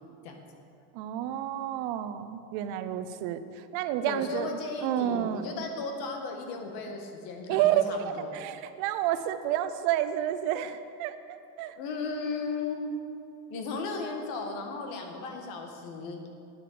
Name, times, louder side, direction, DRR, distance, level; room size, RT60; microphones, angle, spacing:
voice 1, 0.9-4.5 4.8-5.5 7.5-11.7, right 11 dB, 90° right, 11 dB, 0.8 m, -30 dB
voice 2, 4.1-8.4 11.8-12.9 13.5-16.2, left 4 dB, 75° left, 3 dB, 1.8 m, -35 dB
9.7 x 8.7 x 6.8 m, 2.5 s
cardioid pair, 160°, 37 cm